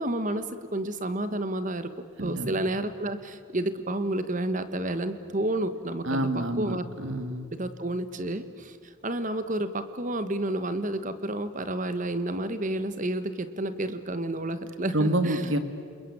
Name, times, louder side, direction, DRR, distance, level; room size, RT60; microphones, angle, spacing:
voice 1, 0.0-1.9 2.2-6.8 7.5-15.5, right 1 dB, 35° right, 11 dB, 1.4 m, -30 dB
voice 2, 2.2-2.6 6.0-7.5 14.9-15.6, right 1 dB, 65° right, 9 dB, 2.0 m, -28 dB
29.5 x 22.0 x 8.8 m, 2.3 s
head